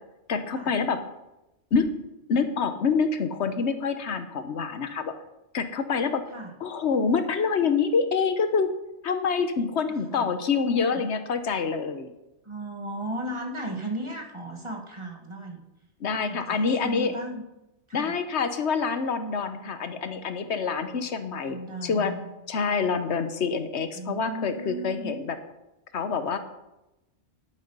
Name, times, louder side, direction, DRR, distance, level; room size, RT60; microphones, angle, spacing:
voice 1, 0.3-1.0 1.7-2.0 2.3-5.1 5.5-6.2 6.6-8.7 9.0-12.1 16.0-17.2 17.9-22.1 22.5-25.4 25.9-26.4, left 5 dB, 75° left, 9 dB, 1.2 m, -26 dB
voice 2, 9.9-10.3 10.6-11.0 12.4-15.6 16.2-17.4 17.9-18.1 21.4-22.2 23.9-25.1, right 1 dB, 25° right, 2 dB, 1.6 m, -36 dB
10.5 x 9.0 x 5.4 m, 0.95 s
omnidirectional pair, 1.2 m